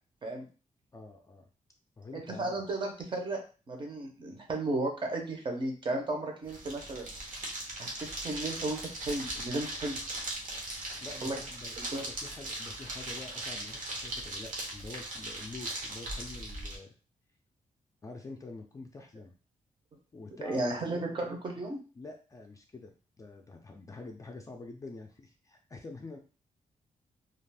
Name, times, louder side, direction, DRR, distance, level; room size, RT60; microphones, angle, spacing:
voice 1, 0.9-1.5 2.0-2.6 11.0-16.9 18.0-19.3 20.1-21.3 22.0-22.9 23.2-26.2, left 3 dB, 25° left, 2 dB, 0.3 m, -46 dB
voice 2, 2.1-3.4 3.7-7.1 7.8-10.0 11.2-11.4 11.8-12.0 20.4-21.8, right 2 dB, 35° right, 2 dB, 0.6 m, -34 dB
sound 1, 6.4-16.8, right 1 dB, 70° right, 0.8 m, -39 dB
2.4 x 2.4 x 3.3 m, 0.36 s
wide cardioid pair, 175°, 14 cm